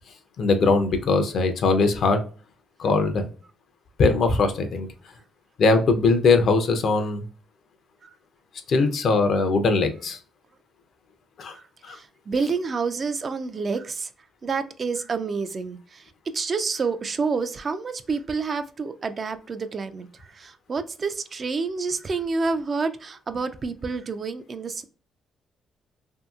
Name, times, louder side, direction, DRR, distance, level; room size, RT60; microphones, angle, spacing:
voice 1, 0.4-2.2 2.8-3.3 4.0-4.9 5.6-7.2 8.7-10.2 11.4-11.5 11.9-12.0, left 3 dB, 65° left, 0.5 m, -20 dB
voice 2, 11.5-14.1 14.4-24.8, right 4 dB, 40° right, 0.3 m, -29 dB
2.7 x 2.7 x 2.3 m
cardioid pair, 90°, 0 cm